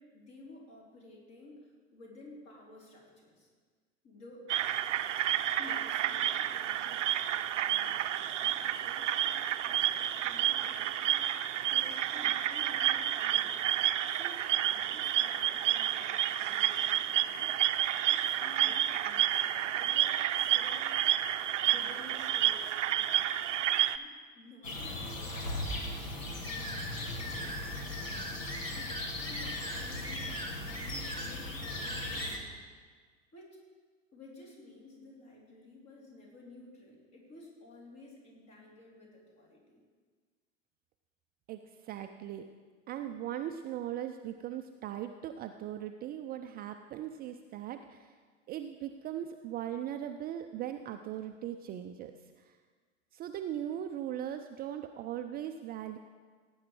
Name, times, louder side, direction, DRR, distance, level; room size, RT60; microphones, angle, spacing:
voice 1, 0.0-3.5 4.0-4.5 5.6-13.6 14.1-17.6 17.9-20.9 21.6-23.4 23.9-32.6 33.3-33.6 34.1-39.8, left 2 dB, 40° left, -2 dB, 4.1 m, -53 dB
sound 1, 4.5-24.0, right 11 dB, 70° right, 0.6 m, -30 dB
sound 2, 24.6-32.4, left 1 dB, 75° left, 1.7 m, -38 dB
sound 3, 26.4-32.4, equal, 10° left, 2.2 m, -41 dB
voice 2, 41.5-42.5 42.9-48.1 48.5-52.6 53.1-56.0, right 11 dB, 25° right, 7 dB, 0.4 m, -39 dB
17.0 x 8.7 x 4.9 m, 1.5 s
figure-of-eight pair, 80°, 39 cm